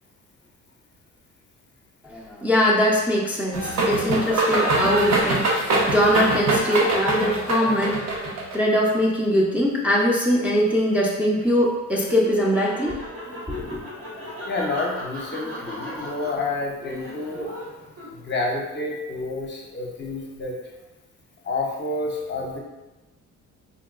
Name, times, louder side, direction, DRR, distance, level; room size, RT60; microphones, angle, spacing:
voice 1, 2.1-8.1 8.5-13.0 13.5-13.8, equal, 5° right, -5 dB, 0.5 m, -22 dB
sound 1, 3.5-8.6, right 2 dB, 60° right, 0.8 m, -23 dB
Laughter, 11.8-18.4, equal, 85° right, 1.1 m, -37 dB
voice 2, 14.4-17.5 18.1-20.6 21.4-22.6, left 2 dB, 40° left, -1 dB, 0.6 m, -29 dB
3.6 x 2.2 x 2.3 m, 1.1 s
cardioid pair, 90°, 30 cm